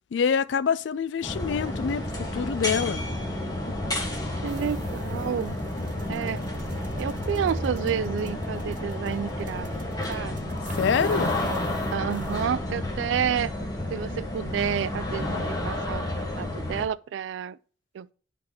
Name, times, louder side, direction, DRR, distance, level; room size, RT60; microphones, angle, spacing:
voice 1, 0.1-3.0 10.8-11.3, left 6 dB, 75° left, 0.4 m, -26 dB
sound 1, 1.2-16.8, left 1 dB, 20° left, 1.2 m, -31 dB
voice 2, 4.4-5.6 6.1-6.4 7.0-9.7 10.1-10.6 11.9-13.5 13.9-17.6 17.9-18.1, right 8 dB, 85° right, 0.3 m, -30 dB
sound 2, 4.5-12.4, right 1 dB, 45° right, 0.6 m, -42 dB
10.5 x 4.0 x 2.8 m
head